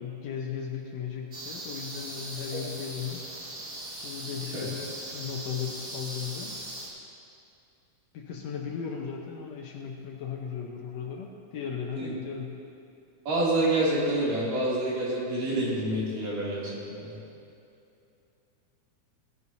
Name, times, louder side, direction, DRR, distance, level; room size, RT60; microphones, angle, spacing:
voice 1, 0.0-3.3 4.0-6.6 8.1-12.6, left 7 dB, 70° left, 1 dB, 1.8 m, -36 dB
sound 1, 1.3-6.9, right 1 dB, 30° right, 1.9 m, -39 dB
voice 2, 13.3-17.2, right 1 dB, 90° right, -7 dB, 4.4 m, -27 dB
18.0 x 12.5 x 2.8 m, 2.7 s
omnidirectional pair, 3.7 m